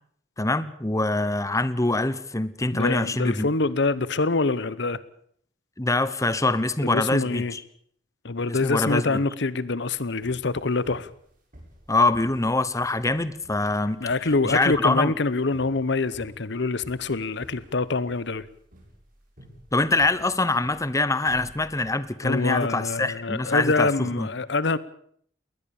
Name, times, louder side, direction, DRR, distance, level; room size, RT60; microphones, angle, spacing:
voice 1, 0.4-3.5 5.8-7.6 8.5-9.2 11.9-14.0 14.4-15.1 19.7-24.3, left 2 dB, 20° left, 15 dB, 1.0 m, -24 dB
voice 2, 2.7-5.0 6.8-7.5 8.2-11.1 14.0-18.4 22.2-24.8, left 3 dB, 70° left, 18 dB, 0.9 m, -25 dB
sound 1, 9.9-22.2, equal, 50° right, 7.4 m, -50 dB
21.5 x 19.5 x 7.1 m, 0.64 s
head